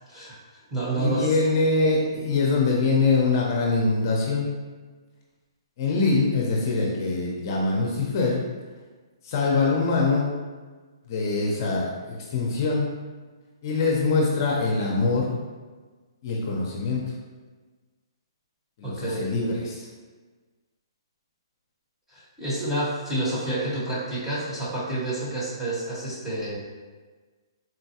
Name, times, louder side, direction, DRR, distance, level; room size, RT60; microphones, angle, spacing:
voice 1, 0.1-1.4 18.8-19.3 22.1-26.6, right 2 dB, 10° right, -9 dB, 1.0 m, -29 dB
voice 2, 1.0-4.5 5.8-8.4 9.2-10.3 11.1-12.9 13.6-15.4 16.2-17.0 18.8-19.9, left 3 dB, 45° left, -2 dB, 0.6 m, -23 dB
3.9 x 2.2 x 2.8 m, 1.4 s
hypercardioid pair, 150°, 3 cm